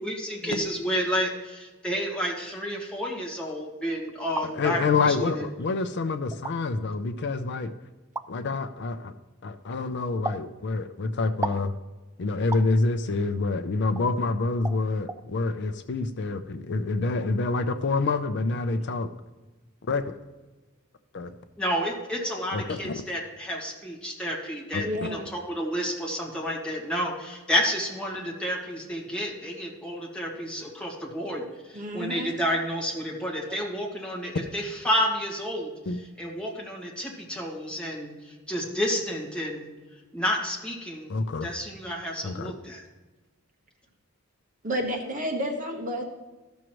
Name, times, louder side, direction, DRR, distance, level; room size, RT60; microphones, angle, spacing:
voice 1, 0.0-5.5 21.6-39.7 40.1-42.8, equal, 5° left, -2 dB, 1.9 m, -30 dB
sound 1, 4.1-4.5 5.4-5.5 6.3-6.6 8.1-8.3 10.2-10.5 11.4-11.7 12.5-12.7 14.0-14.1 14.6-14.8 15.1-15.2, right 3 dB, 15° right, 0.3 m, -33 dB
voice 2, 4.5-7.7 8.3-9.1 9.4-11.7 12.2-19.1 19.9-20.2 21.1-21.3 22.5-22.9 24.7-25.1 35.9-36.0 41.1-41.5 42.2-42.5, left 3 dB, 55° left, 10 dB, 0.5 m, -27 dB
voice 3, 24.8-25.3 31.7-32.3 44.6-46.0, equal, 40° right, 2 dB, 1.3 m, -31 dB
14.0 x 6.2 x 3.1 m, 1.2 s
head